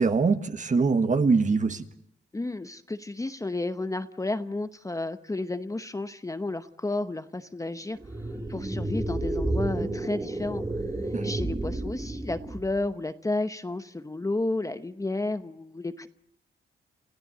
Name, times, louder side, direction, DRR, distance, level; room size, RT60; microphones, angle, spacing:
voice 1, 0.0-1.9 11.1-11.3, right 4 dB, 35° right, 9 dB, 1.5 m, -23 dB
voice 2, 2.3-8.0 8.5-10.6 11.2-16.1, left 2 dB, 15° left, 10 dB, 0.9 m, -32 dB
sound 1, 8.0-12.9, right 2 dB, 15° right, 1.8 m, -31 dB
29.0 x 14.5 x 7.9 m, 0.80 s
cardioid pair, 105°, 21 cm